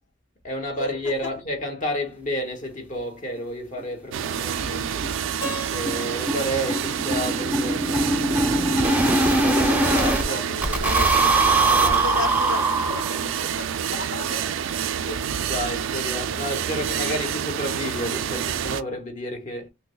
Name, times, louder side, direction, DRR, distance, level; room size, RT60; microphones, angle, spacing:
voice 1, 0.4-5.1 5.7-8.1 8.9-10.6 11.7-12.1 13.4-13.6 15.0-19.7, equal, 40° left, 0.9 m, -31 dB
sound 1, 3.4-3.5 3.8-3.9 4.2-4.3 4.6-4.8 5.0-10.2 10.6-13.4, right 2 dB, 10° right, 0.6 m, -22 dB
sound 2, 4.1-18.8, right 8 dB, 75° right, 0.3 m, -28 dB
Keyboard (musical), 5.4-8.4, right 2 dB, 20° left, 1.4 m, -39 dB
voice 2, 9.6-11.2 11.6-14.4 15.0-15.2, left 3 dB, 65° left, 0.8 m, -34 dB
5.8 x 2.0 x 2.2 m
head